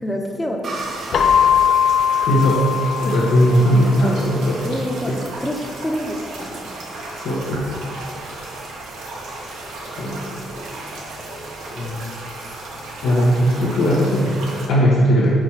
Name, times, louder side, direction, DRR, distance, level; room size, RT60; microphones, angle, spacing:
voice 1, 0.0-0.6 4.0-4.2 4.6-6.6, equal, 10° left, 1 dB, 0.8 m, -27 dB
sound 1, 0.6-4.2, right 3 dB, 50° right, 0.9 m, -37 dB
sound 2, 0.7-14.7, right 2 dB, 90° right, 1.2 m, -34 dB
Keyboard (musical), 1.1-3.9, left 8 dB, 60° left, 0.5 m, -19 dB
voice 2, 2.3-4.6 5.1-5.2 7.1-7.8 9.8-10.3 11.7-12.1 13.0-15.3, equal, 80° left, -7 dB, 1.1 m, -18 dB
4.9 x 4.6 x 5.8 m, 2.4 s
cardioid pair, 90°, 0 cm